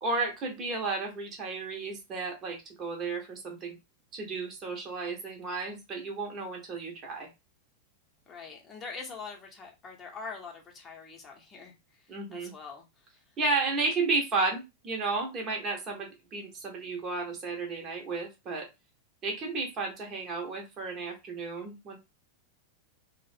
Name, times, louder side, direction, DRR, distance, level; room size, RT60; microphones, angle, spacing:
voice 1, 0.0-3.8 4.1-7.3 12.1-12.5 13.4-18.7 19.2-22.0, right 3 dB, 30° right, 0.8 m, -33 dB
voice 2, 8.3-13.4, left 4 dB, 20° left, 0.8 m, -44 dB
2.4 x 2.1 x 2.5 m
figure-of-eight pair, 90°, 0 cm